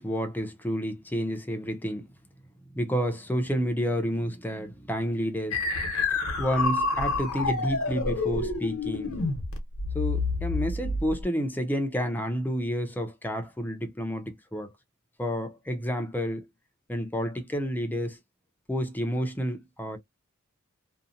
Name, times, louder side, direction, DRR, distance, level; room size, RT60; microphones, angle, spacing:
voice 1, 0.0-2.1 2.7-5.6 6.4-9.2 9.9-14.7 15.2-16.4 16.9-18.2 18.7-20.0, equal, 10° left, 0.5 m, -30 dB
sound 1, 5.5-11.2, left 3 dB, 70° left, 0.9 m, -28 dB
2.7 x 2.1 x 2.5 m
head